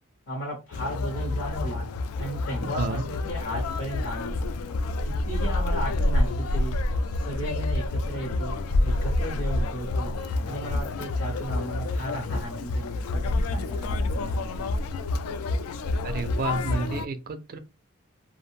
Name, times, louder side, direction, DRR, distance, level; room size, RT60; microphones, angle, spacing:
voice 1, 0.3-1.9 2.2-4.4 5.0-6.8 7.2-8.5 8.8-10.1 10.4-14.5 14.8-15.0, equal, 50° left, 0.7 m, -35 dB
Conversation, 0.7-17.1, left 2 dB, 85° left, 0.3 m, -28 dB
voice 2, 2.7-3.1 16.0-17.6, right 3 dB, 45° right, 0.3 m, -30 dB
2.4 x 2.0 x 3.1 m
head